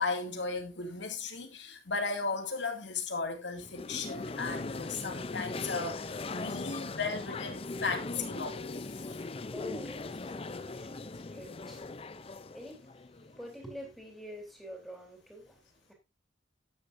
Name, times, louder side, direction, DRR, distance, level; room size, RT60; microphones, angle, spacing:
voice 1, 0.0-9.2, left 4 dB, 80° left, 2.4 m, -36 dB
sound 1, 3.6-13.6, left 3 dB, 30° left, 0.5 m, -40 dB
voice 2, 9.5-15.9, equal, ahead, 3.4 m, -48 dB
12.0 x 10.0 x 2.6 m
head